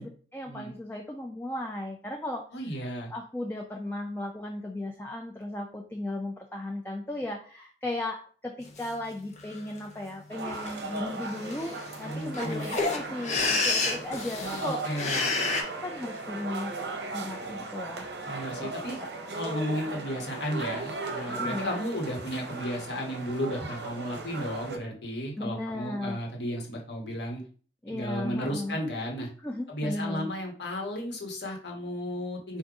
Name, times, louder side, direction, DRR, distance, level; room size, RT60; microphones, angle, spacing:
voice 1, 0.0-2.4 3.1-15.1 15.8-16.7 17.1-18.1 19.0-19.1 21.3-21.7 25.4-26.2 27.8-28.8 29.4-30.3, left 1 dB, 10° left, 1 dB, 0.4 m, -36 dB
voice 2, 2.5-3.1 12.0-12.7 14.4-15.3 18.3-19.0 19.3-27.4 27.9-29.3 29.7-32.6, equal, 70° left, 0 dB, 1.3 m, -34 dB
sound 1, 8.8-8.9 9.4-9.8 10.5-10.7 11.0-11.1 11.2-15.6, left 3 dB, 40° left, 0.8 m, -29 dB
sound 2, 10.3-24.8, right 3 dB, 65° right, 0.7 m, -37 dB
3.9 x 2.5 x 4.7 m, 0.42 s
head